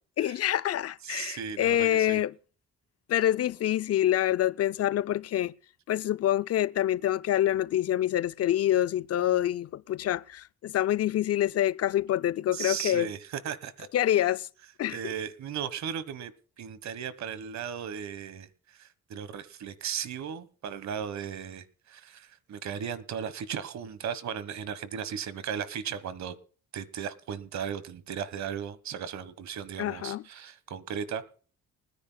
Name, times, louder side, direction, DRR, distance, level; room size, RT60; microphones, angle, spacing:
voice 1, 0.2-2.3 3.1-5.5 5.9-13.1 13.9-14.5 14.8-15.1 29.8-30.2, left 12 dB, 55° left, 0.5 m, -26 dB
voice 2, 1.0-2.2 12.5-13.2 13.4-13.9 14.9-16.3 16.6-18.5 18.8-26.3 26.7-31.2, right 8 dB, 65° right, 1.4 m, -36 dB
29.5 x 9.9 x 2.3 m
cardioid pair, 90°, 30 cm